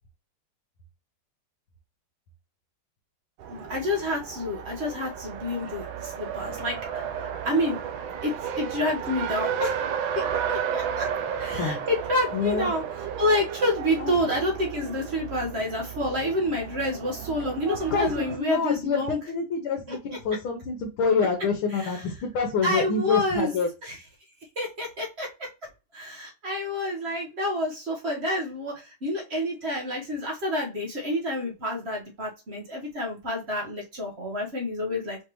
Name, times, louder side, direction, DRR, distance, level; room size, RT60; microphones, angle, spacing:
Race car auto racing, 3.4-18.4, right 8 dB, 75° right, 1.2 m, -33 dB
voice 1, 3.5-7.8 8.2-9.8 10.1-11.1 11.4-19.2 19.9-20.0 21.7-22.0 22.6-23.6 23.8-24.0 24.6-25.3 25.9-35.2, left 1 dB, 35° right, -1 dB, 1.2 m, -29 dB
voice 2, 12.3-12.7 14.0-14.1 17.6-19.0 19.3-23.7, left 5 dB, 75° left, 1 dB, 1.7 m, -27 dB
4.9 x 3.3 x 3.0 m, 0.29 s
omnidirectional pair, 2.3 m